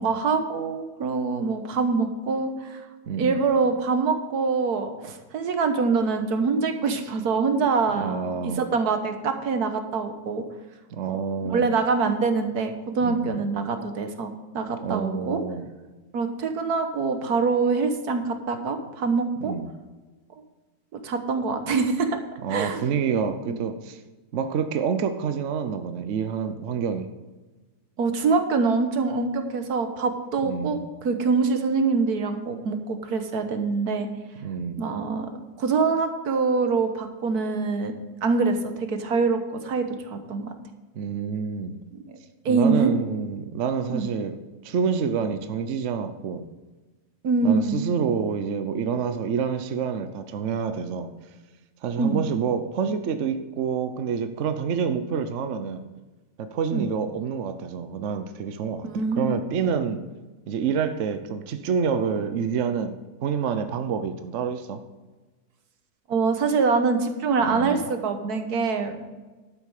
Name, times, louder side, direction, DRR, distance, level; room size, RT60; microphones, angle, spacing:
voice 1, 0.0-2.8 3.2-8.2 8.4-10.4 11.4-15.4 16.1-19.5 20.9-22.2 22.5-23.0 23.5-23.6 28.0-34.1 34.8-35.3 35.6-37.9 38.2-40.5 41.9-42.2 42.4-42.9 43.9-44.1 47.2-47.8 52.0-52.2 56.7-56.8 58.8-59.3 66.1-69.1, right 4 dB, 75° right, 7 dB, 1.6 m, -24 dB
voice 2, 3.1-3.4 7.9-8.6 10.9-11.7 13.0-13.4 14.8-15.7 19.4-19.7 22.4-24.0 24.3-27.1 30.5-30.8 34.4-34.8 41.0-41.8 42.5-44.4 44.6-46.5 47.4-51.1 51.8-55.9 56.4-58.9 59.2-60.0 60.5-64.8 67.4-67.9, right 6 dB, 55° right, 9 dB, 1.0 m, -28 dB
12.0 x 8.9 x 4.9 m, 1.2 s
omnidirectional pair, 1.7 m